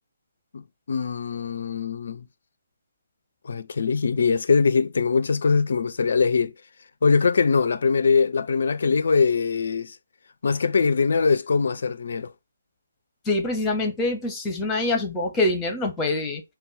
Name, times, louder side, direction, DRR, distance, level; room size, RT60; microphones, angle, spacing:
voice 1, 0.9-2.2 3.4-6.5 7.0-10.0 10.4-12.3, left 5 dB, 50° left, 0.3 m, -22 dB
voice 2, 13.3-16.4, left 2 dB, 10° left, 0.8 m, -25 dB
5.2 x 2.2 x 4.1 m
figure-of-eight pair, 140°, 0 cm